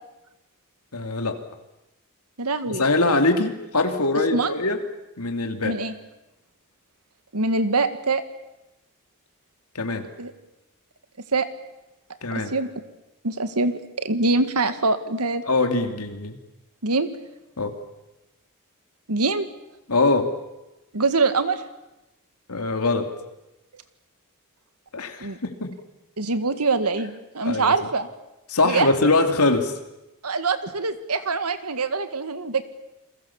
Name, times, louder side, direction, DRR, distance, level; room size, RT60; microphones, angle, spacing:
voice 1, 0.9-1.4 2.8-4.8 5.2-5.8 9.7-10.1 12.2-12.5 15.5-16.4 17.6-17.8 19.9-20.3 22.5-23.1 24.9-25.3 25.6-25.8 27.4-27.7 28.5-29.7, left 3 dB, 85° left, 5 dB, 2.7 m, -22 dB
voice 2, 2.4-2.8 4.3-4.5 5.6-5.9 7.3-8.2 10.2-10.3 11.3-11.5 12.5-12.7 13.2-15.5 16.8-17.1 19.1-19.5 20.9-21.6 25.2-25.4 26.2-28.1 28.6-28.9 30.2-32.6, right 3 dB, 90° right, 10 dB, 1.9 m, -24 dB
29.0 x 22.0 x 7.2 m, 0.95 s
head